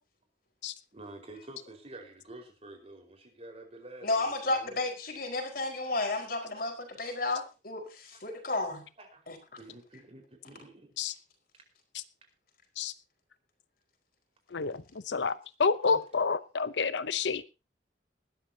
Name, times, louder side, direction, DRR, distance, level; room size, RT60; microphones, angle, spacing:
voice 1, 0.9-4.8 6.0-6.1 6.4-6.5 8.1-8.2 9.0-9.3 9.6-10.9 15.7-16.1, right 2 dB, 35° right, 4 dB, 4.8 m, -49 dB
voice 2, 4.0-8.8 9.3-9.4, left 2 dB, 55° left, 4 dB, 4.8 m, -32 dB
voice 3, 14.5-17.4, left 5 dB, 85° left, 14 dB, 0.7 m, -29 dB
20.0 x 13.0 x 2.8 m, 0.30 s
head